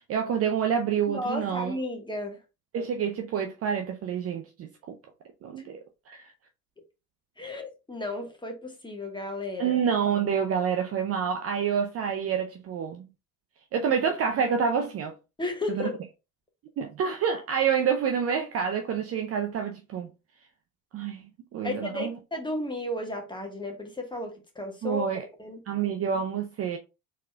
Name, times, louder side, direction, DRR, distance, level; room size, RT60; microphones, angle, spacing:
voice 1, 0.0-1.7 2.7-5.0 5.4-6.3 9.6-13.1 13.7-15.2 15.8-15.9 16.8-20.1 20.9-21.3 21.5-22.1 24.8-25.2 25.7-26.8, right 7 dB, 30° right, 0.6 m, -28 dB
voice 2, 1.1-2.4 7.4-9.8 15.4-16.0 21.6-25.6, left 2 dB, 10° left, 1.5 m, -34 dB
4.2 x 4.1 x 2.3 m
figure-of-eight pair, 65°, 45 cm